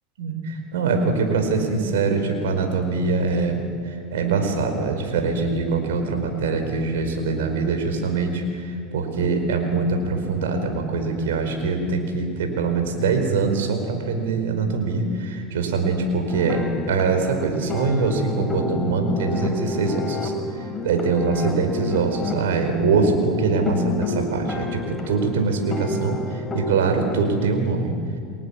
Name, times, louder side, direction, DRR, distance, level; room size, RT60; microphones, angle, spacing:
voice 1, 0.2-20.3 20.8-27.9, right 4 dB, 75° right, 5 dB, 5.0 m, -23 dB
sound 1, 16.3-26.8, left 4 dB, 20° left, 3.2 m, -30 dB
30.0 x 21.0 x 7.2 m, 2.1 s
hypercardioid pair, 80°, 0 cm